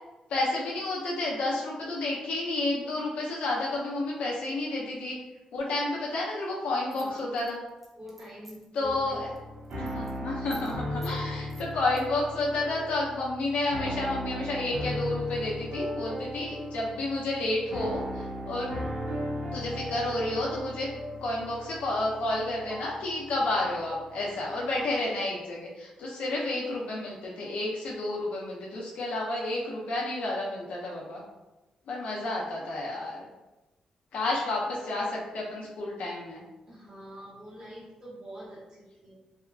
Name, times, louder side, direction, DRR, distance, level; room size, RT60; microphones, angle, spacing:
voice 1, 0.3-5.2 5.5-7.6 8.7-9.3 9.8-18.8 19.5-20.9 21.2-31.2 31.9-33.2 34.1-36.4, left 2 dB, 80° left, -3 dB, 0.5 m, -31 dB
sound 1, 6.9-8.8 9.1-9.4 9.6-10.1 10.5-10.7 11.0-11.2 11.5-12.0, right 1 dB, 5° right, 0.5 m, -51 dB
voice 2, 6.9-7.4 7.9-9.2 36.7-39.1, equal, 40° right, -8 dB, 0.9 m, -45 dB
sound 2, 8.8-25.1, equal, 75° right, 1.3 m, -37 dB
2.7 x 2.2 x 2.3 m, 1.1 s
wide cardioid pair, 160°, 2 cm